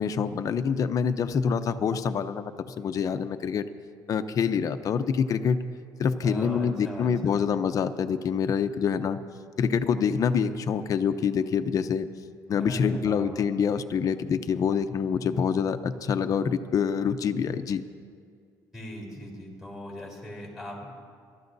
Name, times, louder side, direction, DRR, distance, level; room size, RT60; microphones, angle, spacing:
voice 1, 0.0-2.5 2.8-3.6 4.1-5.6 6.0-9.2 9.6-12.1 12.5-17.8, left 6 dB, 45° left, 10 dB, 0.6 m, -26 dB
voice 2, 6.2-7.4 12.6-13.4 18.7-20.9, left 1 dB, 5° right, -1 dB, 3.8 m, -40 dB
23.0 x 13.0 x 2.7 m, 2.2 s
cardioid pair, 110°, 8 cm